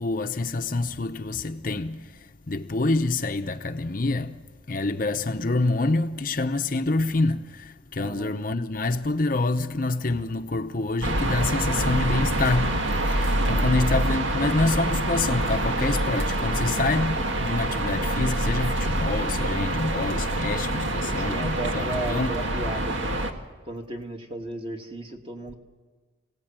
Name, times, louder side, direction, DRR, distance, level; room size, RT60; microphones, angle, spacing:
voice 1, 0.0-4.4 4.7-12.8 13.1-22.3, left 2 dB, 45° left, 0.8 m, -27 dB
voice 2, 8.0-8.3 13.4-14.1 17.2-17.4 20.5-25.6, right 1 dB, 25° right, 2.0 m, -36 dB
sound 1, 11.0-23.3, right 1 dB, 70° right, 1.8 m, -26 dB
26.5 x 17.5 x 8.9 m
head